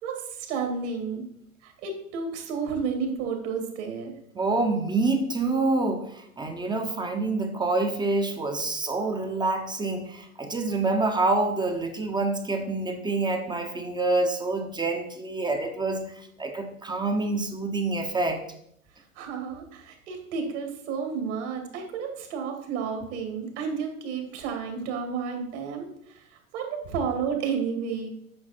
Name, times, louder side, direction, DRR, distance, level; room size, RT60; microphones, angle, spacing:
voice 1, 0.0-1.2 1.6-4.1 19.1-26.2 26.5-28.1, right 6 dB, 55° right, 4 dB, 2.4 m, -31 dB
voice 2, 4.3-16.1 16.4-18.4, right 3 dB, 10° right, 5 dB, 0.9 m, -27 dB
8.7 x 6.1 x 4.3 m, 0.71 s
hypercardioid pair, 105°, 42 cm